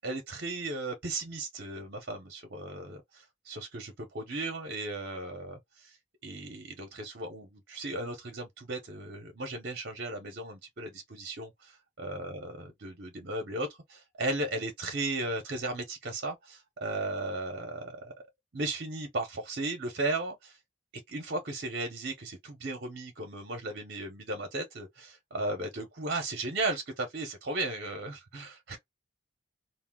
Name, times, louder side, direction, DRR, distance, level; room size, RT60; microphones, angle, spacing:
voice 1, 0.0-6.0 6.2-18.1 18.5-20.6 21.1-28.8, right 2 dB, 55° right, 0.7 m, -36 dB
2.6 x 2.1 x 3.5 m
head